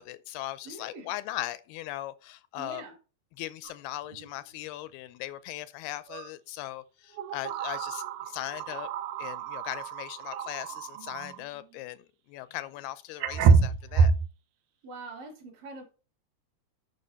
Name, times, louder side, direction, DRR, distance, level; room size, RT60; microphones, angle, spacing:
voice 1, 0.0-2.8 3.4-8.9 9.2-14.1, left 15 dB, 80° left, 2.4 m, -39 dB
voice 2, 0.7-1.1 2.6-2.9 14.8-15.8, right 2 dB, 60° right, 4.0 m, -43 dB
sound 1, 3.6-3.7 4.1-4.3 6.1-6.3 7.1-11.4 12.6-12.7 13.2-14.3, right 5 dB, 80° right, 2.0 m, -27 dB
9.4 x 6.1 x 4.3 m
omnidirectional pair, 4.6 m